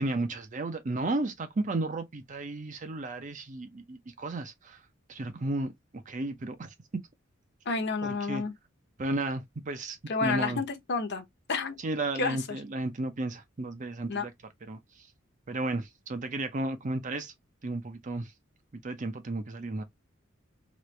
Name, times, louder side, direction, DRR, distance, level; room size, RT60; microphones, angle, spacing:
voice 1, 0.0-4.8 5.1-6.7 8.0-8.4 9.0-10.6 11.8-14.3 14.7-15.1 15.5-17.3 17.6-18.3 18.7-19.8, right 2 dB, 40° right, 0.5 m, -33 dB
voice 2, 7.7-8.5 10.1-11.8 12.2-12.6 14.1-14.3, left 4 dB, 55° left, 0.8 m, -30 dB
3.1 x 2.5 x 3.1 m
head